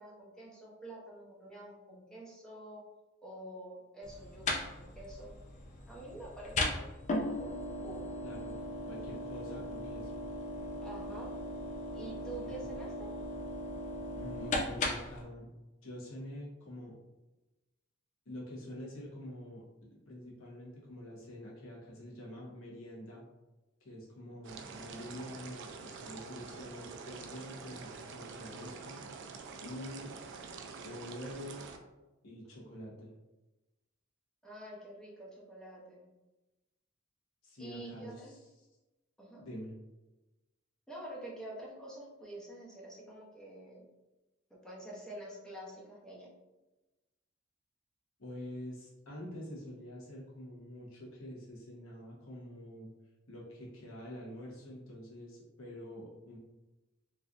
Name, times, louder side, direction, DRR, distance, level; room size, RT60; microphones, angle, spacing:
voice 1, 0.0-2.8 3.2-5.4 5.9-6.9 7.8-8.0 10.8-11.4 11.9-13.1 24.3-24.4 34.4-36.1 37.6-38.3 39.2-39.4 40.9-43.8 44.5-46.3, right 1 dB, 5° left, -5 dB, 0.7 m, -47 dB
sound 1, 4.0-15.2, left 1 dB, 35° left, 0.4 m, -38 dB
voice 2, 8.2-10.2 12.4-12.6 14.2-15.5 15.8-17.0 18.2-19.6 19.9-23.2 23.8-29.0 29.6-30.1 30.8-31.6 32.2-33.1 37.4-38.4 39.4-39.7 48.2-52.9 53.3-56.4, equal, 85° left, -5 dB, 1.1 m, -46 dB
sound 2, 24.4-31.8, right 5 dB, 60° right, 0.4 m, -46 dB
3.1 x 2.6 x 2.4 m, 1.1 s
head